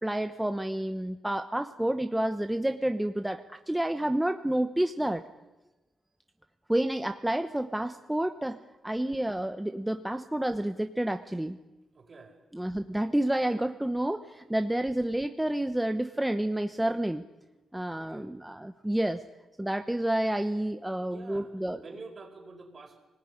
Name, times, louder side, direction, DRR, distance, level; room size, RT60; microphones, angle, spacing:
voice 1, 0.0-5.2 6.7-8.6 8.8-11.6 12.5-17.2 17.7-19.2 19.6-21.8, right 1 dB, 5° right, 8 dB, 1.0 m, -29 dB
voice 2, 11.9-12.4 17.9-18.3 21.1-21.5 21.8-23.0, right 3 dB, 40° right, 4 dB, 5.0 m, -47 dB
23.0 x 19.0 x 10.0 m, 1.1 s
cardioid pair, 95°, 0 cm